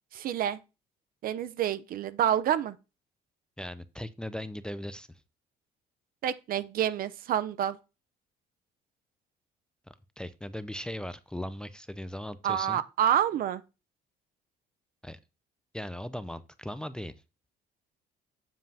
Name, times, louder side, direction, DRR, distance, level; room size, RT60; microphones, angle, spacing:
voice 1, 0.1-0.6 1.2-2.8 6.2-7.8 12.4-13.6, right 10 dB, 60° right, 0.6 m, -28 dB
voice 2, 3.6-5.2 10.2-12.8 15.0-15.2 15.7-17.1, left 1 dB, 5° left, 0.5 m, -38 dB
7.4 x 7.3 x 2.8 m
cardioid pair, 110°, 17 cm